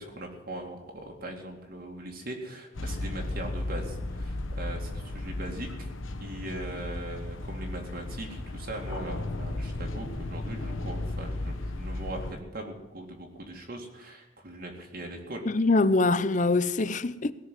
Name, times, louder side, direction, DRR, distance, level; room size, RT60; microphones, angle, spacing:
voice 1, 0.0-5.9 6.2-15.4, right 1 dB, 45° right, 2.2 m, -40 dB
sound 1, 2.7-12.3, left 2 dB, 75° left, 1.1 m, -35 dB
voice 2, 15.4-17.3, left 3 dB, 40° left, 0.6 m, -24 dB
18.0 x 6.5 x 9.3 m
head